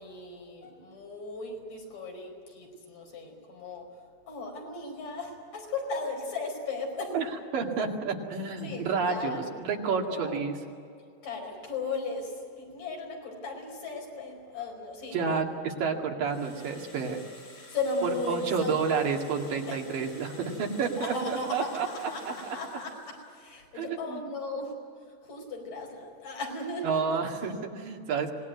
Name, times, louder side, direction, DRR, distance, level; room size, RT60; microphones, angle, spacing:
voice 1, 0.0-3.9 4.3-7.2 8.6-9.5 10.1-10.3 11.2-15.4 17.6-19.1 19.7-19.8 21.0-24.7 25.2-27.2, left 3 dB, 70° left, 1 dB, 6.4 m, -36 dB
voice 2, 7.5-10.5 15.1-17.2 18.0-22.6 23.8-24.2 26.8-28.3, right 5 dB, 75° right, 1 dB, 3.9 m, -30 dB
sound 1, 16.2-23.6, left 2 dB, 35° left, 6.8 m, -51 dB
25.5 x 18.5 x 9.5 m, 2.4 s
omnidirectional pair, 4.0 m